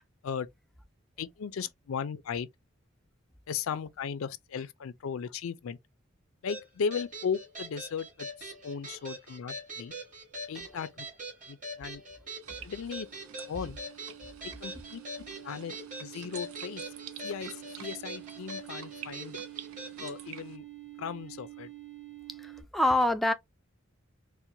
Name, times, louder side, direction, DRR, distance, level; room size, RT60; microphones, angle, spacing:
voice 1, 1.2-2.5 3.5-5.8 6.4-9.9 10.5-11.1 11.5-12.0 12.6-13.1 13.5-13.8 14.4-15.0 15.4-15.7 16.0-16.8 17.2-19.4 20.0-20.6 21.0-21.7, left 6 dB, 80° left, 0.4 m, -36 dB
sound 1, 6.5-20.2, right 1 dB, 40° right, 2.1 m, -43 dB
sound 2, 12.4-22.6, right 18 dB, 55° right, 1.3 m, -48 dB
sound 3, 12.4-20.6, right 10 dB, 85° right, 0.4 m, -50 dB
voice 2, 22.4-23.3, left 1 dB, ahead, 0.3 m, -26 dB
4.4 x 2.1 x 2.6 m
head